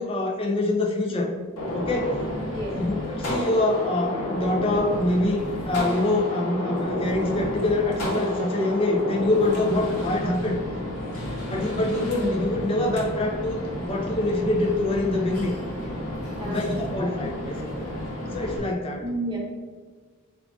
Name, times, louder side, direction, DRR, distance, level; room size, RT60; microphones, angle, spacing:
voice 1, 0.0-1.4 1.7-2.2 2.7-5.4 5.7-10.6 11.5-15.6 16.5-17.6 18.3-19.0, left 2 dB, 25° left, 1 dB, 0.4 m, -25 dB
Gunshot gunfire, 1.6-18.6, left 1 dB, 85° left, 0.9 m, -31 dB
voice 2, 16.3-16.6 17.0-17.2 17.4-17.6 19.0-19.4, right 1 dB, 20° right, -4 dB, 0.7 m, -32 dB
3.7 x 2.4 x 3.4 m, 1.4 s
head